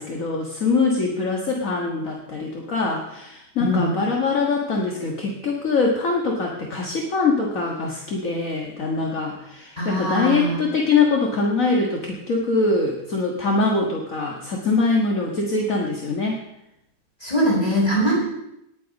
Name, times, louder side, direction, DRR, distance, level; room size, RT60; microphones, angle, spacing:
voice 1, 0.0-16.4, left 3 dB, 60° left, 0 dB, 2.1 m, -23 dB
voice 2, 3.6-3.9 9.8-10.6 17.2-18.1, equal, 25° left, -6 dB, 7.6 m, -21 dB
18.5 x 9.4 x 5.3 m, 0.83 s
omnidirectional pair, 1.6 m